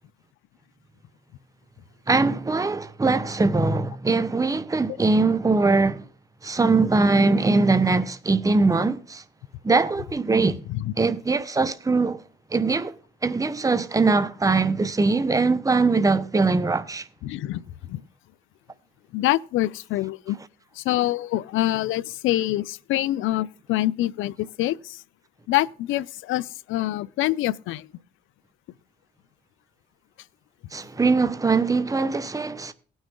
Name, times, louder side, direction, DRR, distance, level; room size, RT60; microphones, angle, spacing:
voice 1, 2.1-6.1 6.4-9.2 9.6-10.6 11.0-12.2 12.5-12.9 13.2-17.0 30.7-32.7, right 3 dB, 15° right, 1.0 m, -21 dB
voice 2, 17.2-18.0 19.1-20.4 20.8-25.0 25.5-27.9, left 15 dB, 85° left, 0.5 m, -25 dB
18.5 x 6.3 x 3.7 m
cardioid pair, 90°, 20 cm